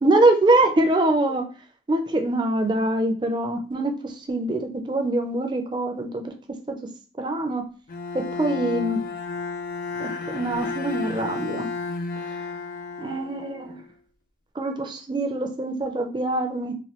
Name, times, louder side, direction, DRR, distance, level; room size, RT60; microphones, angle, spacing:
voice 1, 0.0-1.4 1.9-6.8 7.2-7.7 8.1-9.0 10.0-11.7 12.3-12.4 13.0-13.8 14.6-16.8, right 2 dB, 25° right, 4 dB, 0.4 m, -24 dB
Bowed string instrument, 7.9-13.9, left 4 dB, 50° left, 0.3 m, -32 dB
3.0 x 2.2 x 2.9 m, 0.37 s
head